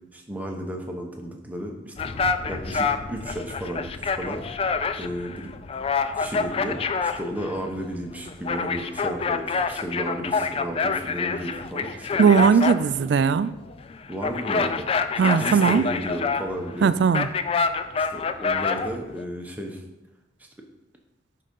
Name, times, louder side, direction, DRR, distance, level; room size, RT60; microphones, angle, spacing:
voice 1, 0.1-2.1 2.4-4.4 5.0-5.5 6.2-12.6 14.1-14.9 15.3-17.0 18.0-19.8 20.4-20.5, equal, 10° right, 1 dB, 0.9 m, -33 dB
sound 1, 2.0-19.2, left 5 dB, 30° left, 0.3 m, -27 dB
voice 2, 12.2-13.5 15.2-15.9 16.8-17.3, right 6 dB, 60° right, 15 dB, 0.3 m, -19 dB
9.6 x 3.8 x 5.3 m, 1.0 s
head